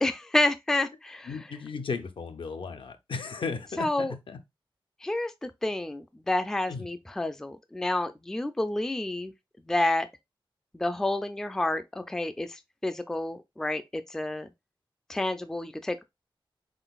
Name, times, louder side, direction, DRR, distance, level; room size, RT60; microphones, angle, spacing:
voice 1, 0.0-1.3 3.8-4.1 5.0-9.3 9.7-10.1 10.8-14.5 15.1-16.0, left 2 dB, 5° left, 0.3 m, -29 dB
voice 2, 1.3-4.4 6.7-6.9, left 5 dB, 65° left, 0.6 m, -35 dB
4.0 x 3.8 x 2.3 m
wide cardioid pair, 130°, 9 cm